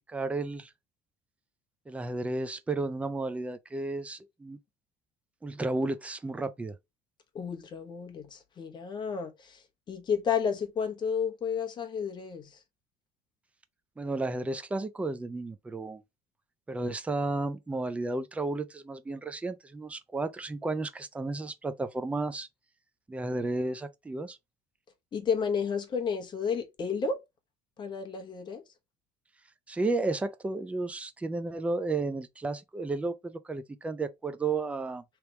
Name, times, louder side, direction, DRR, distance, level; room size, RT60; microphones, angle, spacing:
voice 1, 0.1-0.7 1.9-4.6 5.4-6.8 14.0-16.0 16.7-22.5 23.1-24.4 29.7-35.0, right 3 dB, 10° right, 0.4 m, -33 dB
voice 2, 7.3-9.6 9.9-12.6 25.1-27.2 27.8-28.6, left 6 dB, 30° left, 1.0 m, -31 dB
3.4 x 3.0 x 4.2 m
cardioid pair, 145°, 16 cm